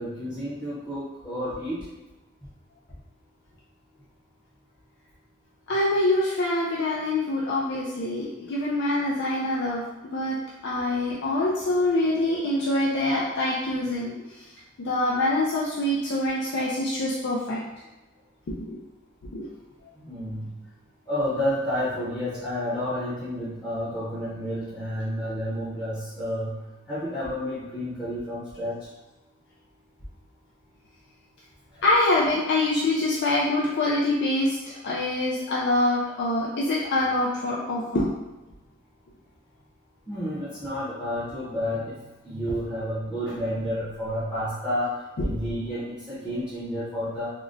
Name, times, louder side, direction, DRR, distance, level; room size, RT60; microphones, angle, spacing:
voice 1, 0.0-1.9 20.0-20.5 21.1-26.5 26.9-28.8 40.1-42.0 42.2-44.9 45.2-47.3, equal, 10° left, -10 dB, 0.7 m, -30 dB
voice 2, 5.7-14.5 14.8-17.6 18.5-18.8 19.3-19.5 31.8-34.6 34.8-38.1 45.2-45.3, left 2 dB, 55° left, -5 dB, 0.4 m, -25 dB
3.7 x 2.1 x 2.5 m, 1.1 s
head